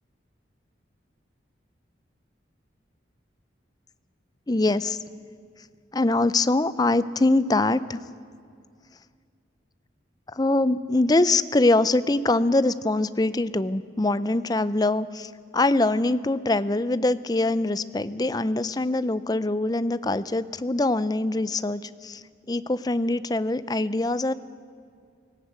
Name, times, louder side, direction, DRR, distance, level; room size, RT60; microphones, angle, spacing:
voice 1, 4.5-5.0 5.9-8.0 10.3-22.2 22.5-24.3, left 2 dB, 20° left, 15 dB, 0.5 m, -23 dB
18.0 x 16.5 x 9.4 m, 2.2 s
head